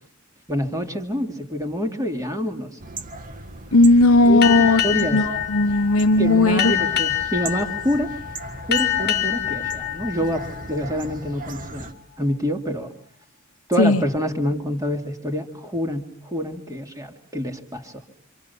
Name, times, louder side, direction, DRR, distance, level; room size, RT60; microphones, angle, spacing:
voice 1, 0.5-2.8 4.2-5.2 6.2-8.1 8.7-12.9 13.7-18.0, equal, 15° right, 4 dB, 2.6 m, -27 dB
sound 1, 2.8-11.9, right 2 dB, 40° right, 1.8 m, -37 dB
voice 2, 3.7-4.8 5.1-6.7 13.8-14.0, left 2 dB, 70° left, 9 dB, 1.0 m, -16 dB
Boat Water vehicle, 4.4-11.5, left 11 dB, 50° left, 1.4 m, -26 dB
27.0 x 26.5 x 7.1 m, 0.62 s
head